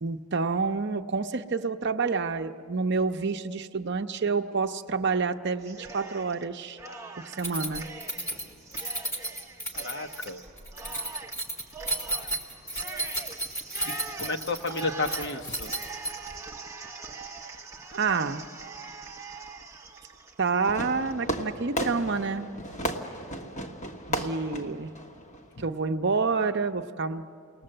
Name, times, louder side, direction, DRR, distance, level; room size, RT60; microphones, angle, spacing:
voice 1, 0.0-6.8 7.2-7.9 17.9-18.5 20.4-22.5 24.1-24.9 25.6-27.2, right 4 dB, 50° right, 8 dB, 0.6 m, -28 dB
Cheering, 5.6-6.5 6.8-21.1, right 4 dB, 15° right, 0.7 m, -43 dB
Keys jangling, 7.4-16.4, right 1 dB, 15° left, 2.0 m, -33 dB
voice 2, 9.7-10.4 14.2-15.7, left 3 dB, 50° left, 5 dB, 1.0 m, -32 dB
Fireworks, 20.6-25.7, right 1 dB, 35° left, 1.4 m, -34 dB
29.0 x 19.5 x 7.7 m, 2.5 s
head